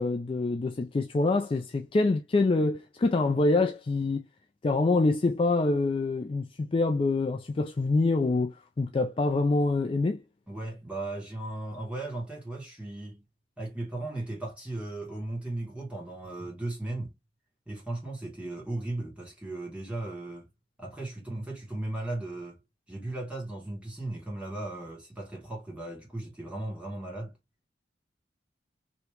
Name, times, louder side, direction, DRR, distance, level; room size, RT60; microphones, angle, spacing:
voice 1, 0.0-4.2 4.6-10.2, left 3 dB, 30° left, 0.3 m, -26 dB
voice 2, 10.5-13.2 13.6-17.1 17.7-20.5 20.8-22.6 22.9-27.4, right 2 dB, 5° right, 1.6 m, -36 dB
3.1 x 2.8 x 3.2 m
head